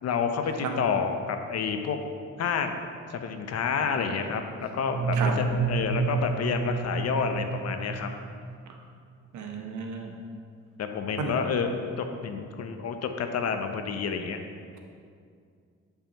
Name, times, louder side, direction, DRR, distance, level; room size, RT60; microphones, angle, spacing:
voice 1, 0.0-2.0 2.4-2.8 3.1-8.1 10.8-14.4, left 6 dB, 55° left, 6 dB, 0.7 m, -29 dB
sound 1, 4.9-8.6, right 4 dB, 40° right, 0.8 m, -29 dB
voice 2, 9.3-10.1 11.2-11.4, right 5 dB, 70° right, 3 dB, 0.9 m, -33 dB
8.2 x 5.6 x 2.9 m, 2.3 s
cardioid pair, 90°, 30 cm